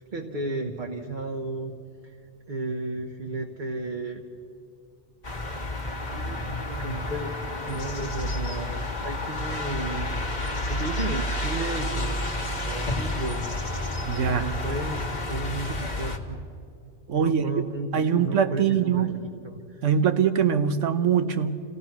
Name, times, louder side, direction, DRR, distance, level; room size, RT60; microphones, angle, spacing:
voice 1, 0.0-1.7 2.0-2.1 2.5-4.2 6.1-6.5 6.8-7.3 7.7-12.2 12.7-13.5 14.1-16.4 17.1-19.8, right 2 dB, 40° right, 1.3 m, -33 dB
sound 1, 5.2-16.2, left 1 dB, 40° left, 1.7 m, -30 dB
Trumpet, 10.0-15.8, left 1 dB, 60° left, 1.6 m, -43 dB
voice 2, 14.1-14.5 17.1-17.4 17.9-19.2 19.8-21.6, right 7 dB, 85° right, 1.3 m, -23 dB
28.0 x 16.5 x 6.0 m
omnidirectional pair, 1.2 m